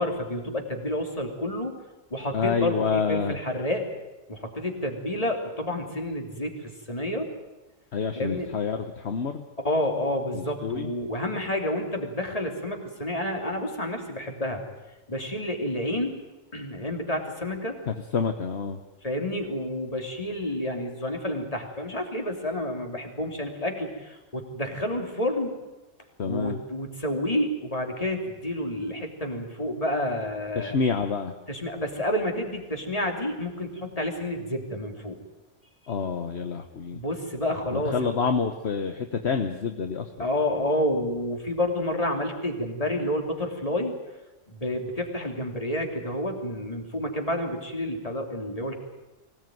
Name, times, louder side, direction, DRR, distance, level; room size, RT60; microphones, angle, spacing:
voice 1, 0.0-1.7 2.1-3.8 4.3-6.5 6.9-7.3 8.1-8.5 9.6-14.6 15.1-16.2 16.5-17.8 19.0-25.6 26.2-30.8 31.5-35.2 36.9-38.1 40.2-43.9 44.5-48.8, left 1 dB, 30° left, 2 dB, 3.3 m, -29 dB
voice 2, 2.3-3.3 7.9-9.4 10.3-10.9 17.9-18.8 26.2-26.6 30.5-31.3 35.9-37.0 37.7-40.3, left 5 dB, 60° left, 6 dB, 1.4 m, -28 dB
24.0 x 17.5 x 9.3 m, 1.1 s
omnidirectional pair, 1.3 m